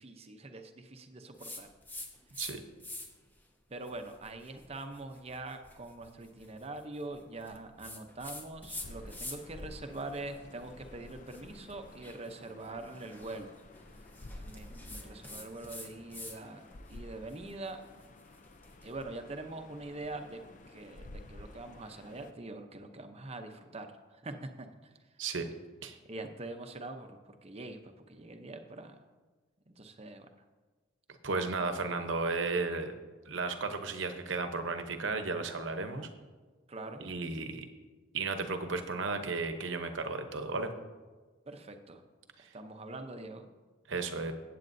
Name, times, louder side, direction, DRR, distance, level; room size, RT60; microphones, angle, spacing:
voice 1, 0.0-1.7 3.7-13.5 14.4-17.8 18.8-20.4 20.7-24.9 26.0-29.0 29.7-30.3 36.7-37.0 41.5-42.0 42.5-43.5 44.1-44.3, right 2 dB, 30° right, 7 dB, 0.7 m, -44 dB
sound 1, 1.4-2.5 2.8-3.3 3.8-9.6 9.9-16.4 16.7-18.9, left 1 dB, 10° left, 0.9 m, -47 dB
sound 2, 8.7-22.3, left 1 dB, 40° left, 0.5 m, -51 dB
voice 2, 31.2-32.9 33.3-36.1 37.0-37.7 38.1-40.7 42.4-42.5 43.9-44.3, right 3 dB, 65° right, 7 dB, 0.9 m, -34 dB
15.0 x 8.5 x 2.7 m, 1.3 s
head